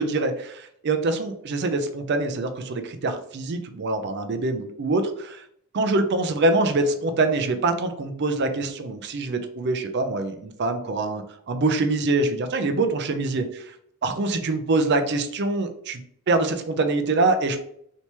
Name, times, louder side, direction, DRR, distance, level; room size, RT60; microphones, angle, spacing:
voice 1, 0.0-5.4 5.7-13.6 14.0-16.0 16.3-17.6, right 2 dB, 55° right, 7 dB, 0.5 m, -24 dB
3.3 x 2.9 x 2.8 m, 0.69 s
head